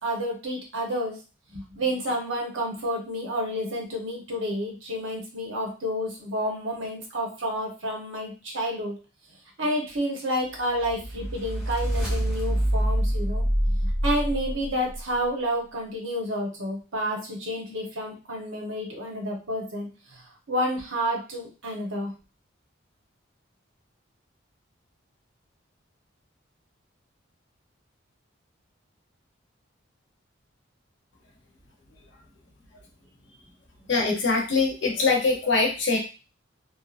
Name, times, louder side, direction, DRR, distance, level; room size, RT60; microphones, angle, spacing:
voice 1, 0.0-1.2 1.5-8.9 9.6-13.4 13.8-22.1, equal, 75° right, 0 dB, 0.9 m, -30 dB
sound 1, 10.8-15.0, equal, ahead, 0.9 m, -26 dB
voice 2, 33.9-36.0, left 4 dB, 65° left, 1 dB, 0.7 m, -23 dB
2.7 x 2.4 x 2.4 m, 0.32 s
head